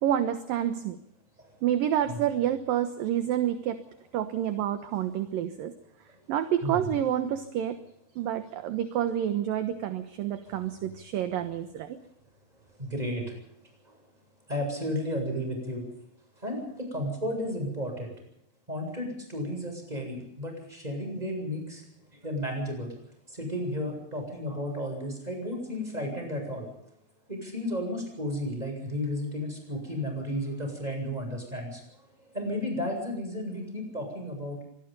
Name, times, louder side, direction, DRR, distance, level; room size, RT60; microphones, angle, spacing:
voice 1, 0.0-1.0 1.6-3.8 4.1-5.7 6.3-7.8 8.2-12.0, right 10 dB, 65° right, 9 dB, 2.7 m, -28 dB
voice 2, 6.6-6.9 10.5-10.6 12.8-13.4 13.8-14.0 14.5-15.8 16.4-18.1 18.7-21.8 22.2-22.9 23.3-26.7 27.3-31.8 32.3-34.6, equal, 10° right, 3 dB, 7.7 m, -33 dB
25.0 x 21.0 x 5.5 m, 0.76 s
omnidirectional pair, 4.7 m